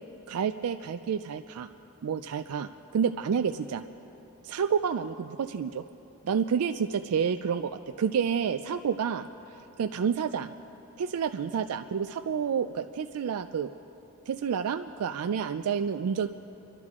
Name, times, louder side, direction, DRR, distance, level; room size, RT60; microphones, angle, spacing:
voice 1, 0.3-1.7 2.0-3.8 4.4-5.8 6.2-9.3 9.8-10.5 11.0-13.7 14.3-16.3, right 7 dB, 80° right, 9 dB, 0.4 m, -29 dB
30.0 x 11.5 x 3.6 m, 3.0 s
head